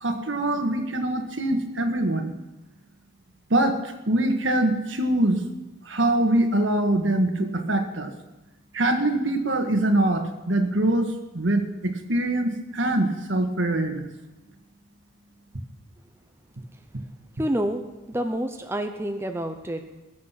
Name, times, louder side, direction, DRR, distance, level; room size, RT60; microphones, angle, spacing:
voice 1, 0.0-2.3 3.5-3.8 4.1-5.4 5.9-8.1 8.7-14.1, right 1 dB, 70° right, 5 dB, 1.7 m, -23 dB
voice 2, 17.4-17.8 18.1-20.0, right 1 dB, 10° right, 5 dB, 0.7 m, -28 dB
20.5 x 7.5 x 5.9 m, 1.0 s
head